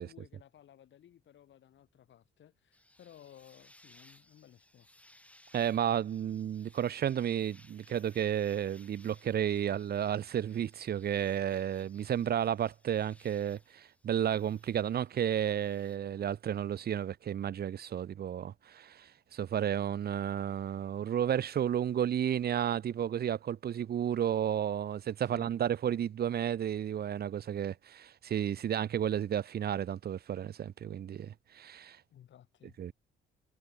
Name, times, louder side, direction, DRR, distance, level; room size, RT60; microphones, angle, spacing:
voice 1, 0.0-4.9 25.2-25.5 32.1-32.8, left 10 dB, 70° left, 4.8 m, -57 dB
sound 1, 2.7-16.0, left 1 dB, 5° left, 6.7 m, -63 dB
voice 2, 5.5-32.0 32.8-32.9, right 9 dB, 50° right, 0.9 m, -32 dB
cardioid pair, 90°, 20 cm